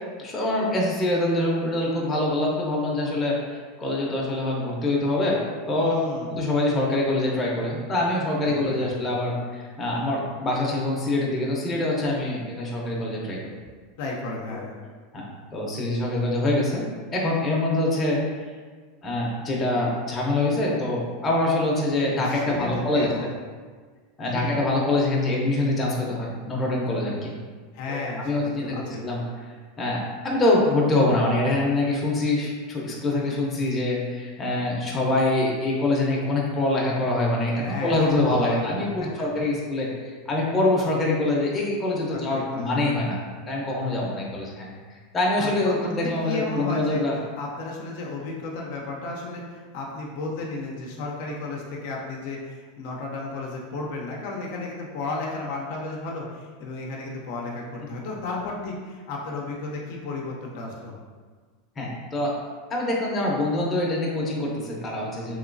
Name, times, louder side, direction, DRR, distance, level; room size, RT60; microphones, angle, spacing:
voice 1, 0.2-5.4 5.7-5.9 6.2-13.5 14.5-14.6 15.1-15.3 15.5-16.8 17.1-18.2 19.0-23.3 24.2-27.3 27.9-29.2 29.8-43.2 43.5-44.7 45.1-47.2 61.8-62.3 62.7-65.4, left 2 dB, 20° left, -3 dB, 0.7 m, -25 dB
voice 2, 5.8-6.3 8.4-9.0 14.0-14.7 22.2-23.3 24.2-24.6 27.7-29.0 37.6-38.0 38.3-38.7 39.0-39.1 42.1-42.8 45.4-47.0 47.4-61.0, left 2 dB, 65° left, -2 dB, 0.5 m, -33 dB
3.0 x 2.9 x 2.5 m, 1.5 s
supercardioid pair, 120°, 0 cm